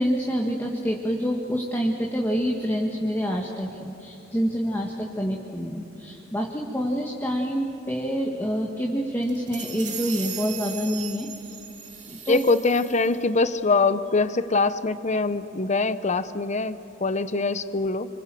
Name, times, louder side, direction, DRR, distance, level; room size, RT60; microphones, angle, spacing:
voice 1, 0.0-11.3 12.1-12.4, equal, 10° left, 0 dB, 1.7 m, -27 dB
sound 1, 9.2-13.2, right 7 dB, 40° right, 2.5 m, -38 dB
voice 2, 12.3-18.1, left 3 dB, 35° left, 13 dB, 0.8 m, -23 dB
28.5 x 25.5 x 7.7 m, 3.0 s
head